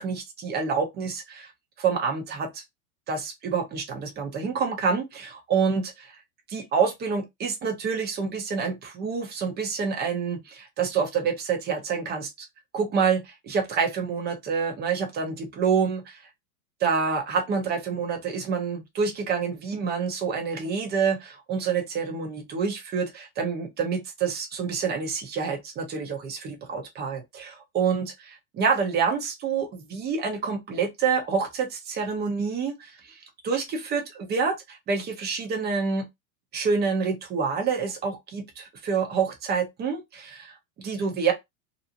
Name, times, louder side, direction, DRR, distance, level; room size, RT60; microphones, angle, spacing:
voice 1, 0.0-1.5 1.8-2.6 3.1-6.2 6.5-12.5 12.7-16.2 16.8-36.1 36.5-41.3, right 5 dB, 25° right, 0.7 m, -27 dB
2.6 x 2.0 x 2.7 m
hypercardioid pair, 120°, 42 cm